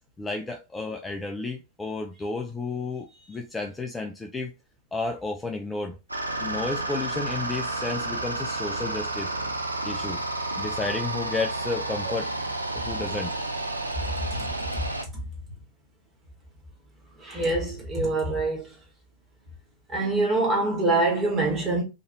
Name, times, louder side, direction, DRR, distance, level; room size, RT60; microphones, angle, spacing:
voice 1, 0.2-4.5 4.9-6.0 6.4-9.3 9.8-10.2 10.6-12.3 12.8-13.3, left 3 dB, 10° left, 0.4 m, -32 dB
sound 1, 6.1-15.0, right 2 dB, 85° right, 0.3 m, -31 dB
voice 2, 14.2-14.5 17.2-18.7 19.9-21.8, right 2 dB, 20° right, 1.3 m, -25 dB
2.9 x 2.6 x 2.6 m
figure-of-eight pair, 90°, 0 cm